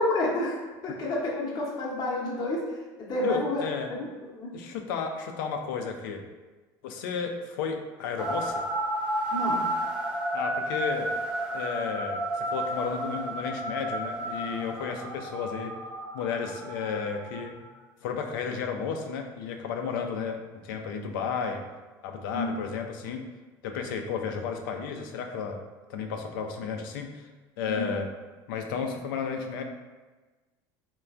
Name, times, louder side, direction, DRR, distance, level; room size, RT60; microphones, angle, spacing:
voice 1, 0.0-2.6 3.0-3.6 3.9-4.0 4.4-4.5 9.3-9.7 22.3-22.5 27.8-28.0, left 1 dB, 40° left, -4 dB, 0.7 m, -29 dB
voice 2, 3.2-3.9 4.5-6.2 6.8-8.6 10.3-11.1 11.5-15.8 16.1-17.7 18.0-20.4 20.6-21.6 22.0-23.2 23.6-25.6 25.9-27.3 27.6-28.1 28.5-29.6, left 6 dB, 90° left, 4 dB, 0.4 m, -33 dB
sound 1, 8.2-17.6, right 1 dB, 10° right, 0.6 m, -32 dB
3.1 x 2.2 x 2.4 m, 1.2 s
supercardioid pair, 110°, 11 cm